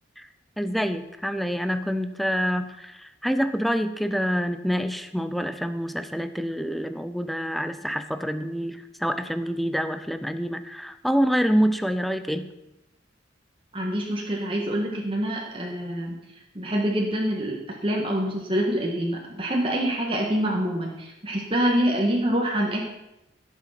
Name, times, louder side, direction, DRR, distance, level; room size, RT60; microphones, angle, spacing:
voice 1, 0.6-12.5, equal, ahead, 9 dB, 0.6 m, -26 dB
voice 2, 13.7-16.2 16.5-17.6 17.8-22.8, equal, 25° right, -1 dB, 1.5 m, -26 dB
16.0 x 7.2 x 5.8 m, 0.93 s
head